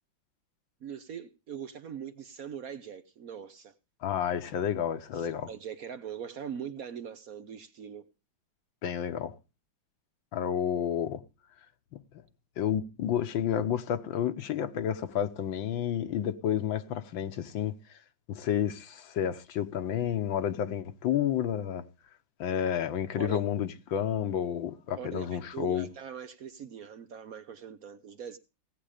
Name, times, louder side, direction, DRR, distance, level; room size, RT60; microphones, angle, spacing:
voice 1, 0.8-3.7 5.1-8.1 23.2-23.4 25.0-28.4, right 8 dB, 60° right, 1.1 m, -41 dB
voice 2, 4.0-5.5 8.8-9.4 10.3-11.2 12.6-18.0 18.3-21.8 22.4-25.9, left 9 dB, 80° left, 1.8 m, -30 dB
17.5 x 8.6 x 5.0 m
omnidirectional pair, 2.1 m